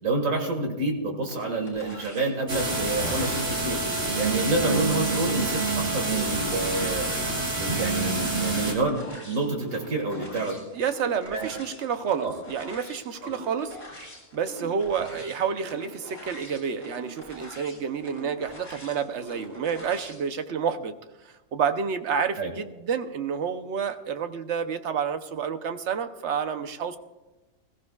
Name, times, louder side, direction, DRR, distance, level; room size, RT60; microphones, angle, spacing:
voice 1, 0.0-7.1 7.6-10.5 11.3-11.5 12.2-12.3 22.4-22.5, right 2 dB, 85° right, 1 dB, 2.3 m, -28 dB
sound 1, 1.2-20.2, equal, 45° left, 4.7 m, -44 dB
sound 2, 2.5-8.7, right 3 dB, 45° right, 2.5 m, -27 dB
voice 2, 10.7-13.8 14.3-20.9 21.2-27.0, right 7 dB, 60° right, 9 dB, 1.1 m, -29 dB
20.5 x 15.0 x 2.4 m, 1.1 s
omnidirectional pair, 1.4 m